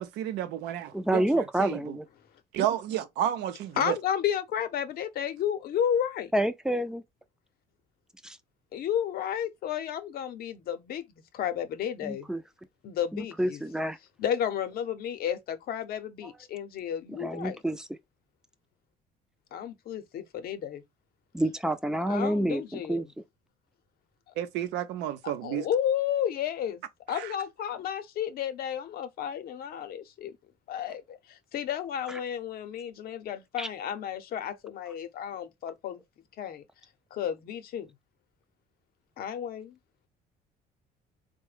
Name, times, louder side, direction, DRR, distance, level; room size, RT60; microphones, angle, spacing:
voice 1, 0.0-2.0 2.5-4.0 24.4-25.7 27.1-27.3, right 11 dB, 85° right, 0.6 m, -31 dB
voice 2, 0.9-2.0 6.3-7.0 8.2-8.4 12.0-12.4 13.1-14.0 17.2-17.8 21.3-23.1 32.1-32.2 33.6-33.7, right 1 dB, 5° right, 0.4 m, -28 dB
voice 3, 3.8-6.3 8.7-12.3 12.8-13.6 14.2-17.6 19.5-20.8 22.1-23.0 24.3-24.4 25.4-26.8 27.1-30.3 30.7-36.0 36.4-36.6 37.1-37.9 39.2-39.8, left 9 dB, 65° left, 0.7 m, -32 dB
3.7 x 2.2 x 3.2 m
cardioid pair, 110°, 17 cm